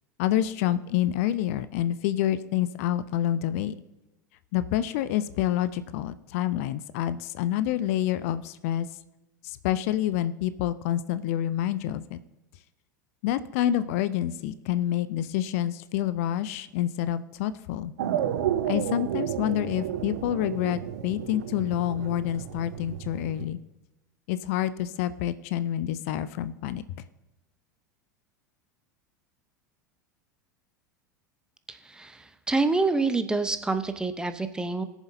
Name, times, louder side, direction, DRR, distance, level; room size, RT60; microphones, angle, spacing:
voice 1, 0.2-3.7 4.5-8.9 9.4-12.2 13.2-17.9 18.7-23.6 24.3-26.8, left 12 dB, 50° left, 15 dB, 0.5 m, -28 dB
sound 1, 18.0-23.5, right 10 dB, 60° right, 0.7 m, -32 dB
voice 2, 31.7-34.8, right 3 dB, 10° right, 10 dB, 0.7 m, -27 dB
21.0 x 7.2 x 2.7 m, 1.0 s
figure-of-eight pair, 80°, 10 cm